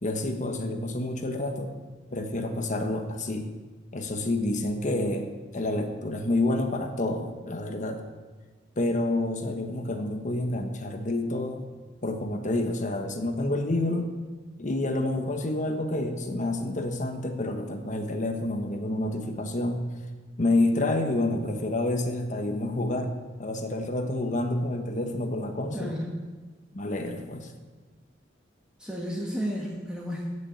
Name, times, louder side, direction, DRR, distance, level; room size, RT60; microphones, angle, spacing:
voice 1, 0.0-1.7 2.1-3.5 3.9-5.3 5.5-8.0 8.8-11.7 12.0-14.1 14.6-19.9 20.4-23.1 23.4-26.0 26.7-27.5, left 2 dB, 40° left, 6 dB, 1.2 m, -28 dB
voice 2, 25.7-26.1 28.8-30.4, equal, 5° right, -4 dB, 1.7 m, -32 dB
15.0 x 6.8 x 8.5 m, 1.3 s
head